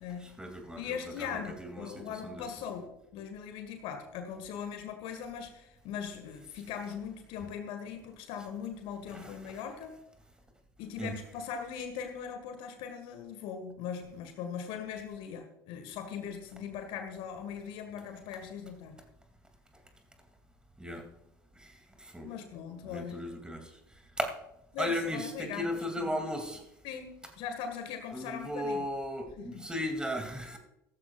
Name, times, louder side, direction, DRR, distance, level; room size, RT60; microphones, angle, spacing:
voice 1, 0.2-2.5 9.1-9.6 11.0-11.1 20.8-21.0 21.6-22.3 22.8-23.7 24.2-24.3 24.8-26.6 28.1-30.6, equal, 5° right, 4 dB, 2.7 m, -36 dB
voice 2, 0.8-2.9 3.1-9.9 10.8-19.0 22.2-23.2 24.7-25.7 26.0-26.2 26.8-28.9 29.4-29.7, left 7 dB, 55° left, 6 dB, 1.8 m, -40 dB
15.5 x 14.0 x 2.5 m, 0.87 s
figure-of-eight pair, 65°, 11 cm